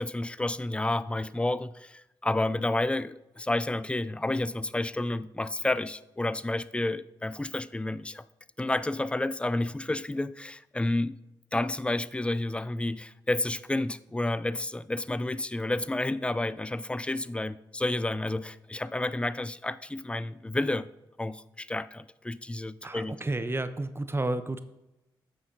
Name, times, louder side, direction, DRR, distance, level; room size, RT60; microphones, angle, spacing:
voice 1, 0.0-8.2 8.6-11.2 11.5-20.9 21.2-23.2, left 2 dB, 10° left, 0.4 m, -30 dB
voice 2, 22.8-24.6, right 2 dB, 25° right, 0.8 m, -31 dB
8.9 x 6.2 x 3.8 m
hypercardioid pair, 40°, 11 cm